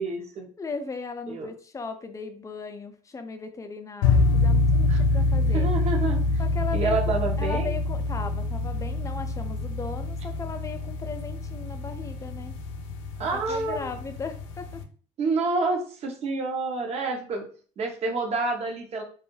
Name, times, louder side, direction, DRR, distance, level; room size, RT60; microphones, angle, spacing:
voice 1, 0.0-0.5 1.3-1.5 4.9-5.0 5.5-6.4 6.7-7.7 13.2-13.9 15.2-17.5 17.8-19.0, right 3 dB, 45° right, 3 dB, 0.7 m, -28 dB
voice 2, 0.6-5.7 6.4-7.0 7.4-12.5 13.3-14.8, left 4 dB, 20° left, 7 dB, 0.4 m, -37 dB
sound 1, 4.0-14.8, left 3 dB, 85° left, 0.4 m, -26 dB
2.3 x 2.1 x 3.0 m, 0.42 s
supercardioid pair, 85°, 15 cm